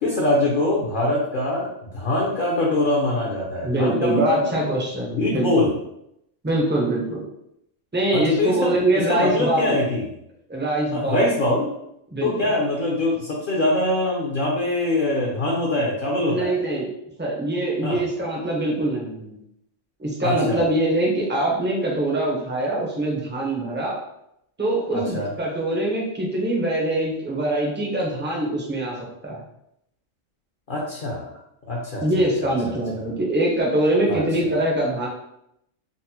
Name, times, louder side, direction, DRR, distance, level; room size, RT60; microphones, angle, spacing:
voice 1, 0.0-4.6 5.1-5.7 8.1-10.1 10.9-11.7 12.2-16.5 17.8-18.0 20.2-20.6 24.9-25.3 30.7-31.3 31.7-32.0 34.1-34.2, left 1 dB, 50° left, -3 dB, 0.6 m, -23 dB
voice 2, 3.6-5.7 6.4-7.2 7.9-9.8 10.5-11.3 12.1-12.5 16.3-16.9 17.2-19.3 20.0-24.0 24.6-29.0 29.2-29.4 32.0-35.1, right 1 dB, 15° right, -3 dB, 0.4 m, -23 dB
3.9 x 2.1 x 2.8 m, 0.78 s
omnidirectional pair, 1.3 m